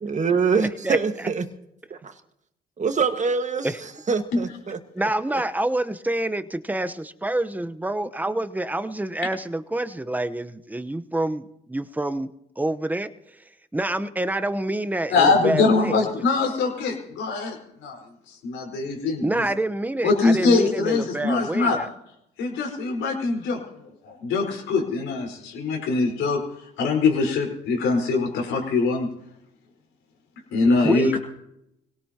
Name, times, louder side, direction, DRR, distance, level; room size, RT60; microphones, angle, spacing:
voice 1, 0.0-1.5 1.9-2.1 2.8-4.8 5.3-5.4, right 5 dB, 40° right, 7 dB, 1.7 m, -25 dB
voice 2, 0.6-1.0 5.0-11.4 11.7-12.3 12.6-13.1 13.7-16.0 19.2-21.9 30.8-31.2, right 1 dB, 10° right, 10 dB, 1.0 m, -27 dB
voice 3, 15.1-17.6 17.8-18.0 18.4-19.4 20.0-21.8 22.4-23.6 24.0-26.4 26.8-29.1 30.5-31.1, left 4 dB, 80° left, 0 dB, 4.7 m, -22 dB
25.5 x 18.0 x 3.0 m, 0.81 s
supercardioid pair, 65°, 19 cm